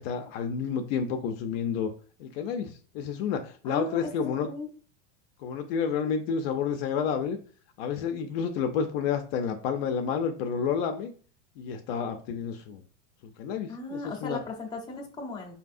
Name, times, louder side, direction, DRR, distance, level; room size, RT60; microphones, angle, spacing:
voice 1, 0.0-1.9 2.2-4.5 5.4-7.4 7.8-11.1 11.6-12.8 13.4-14.4, left 6 dB, 55° left, 5 dB, 0.5 m, -30 dB
voice 2, 3.6-4.7 13.7-15.5, left 3 dB, 10° left, 0 dB, 0.7 m, -37 dB
4.5 x 2.7 x 2.5 m, 0.40 s
supercardioid pair, 140°, 35 cm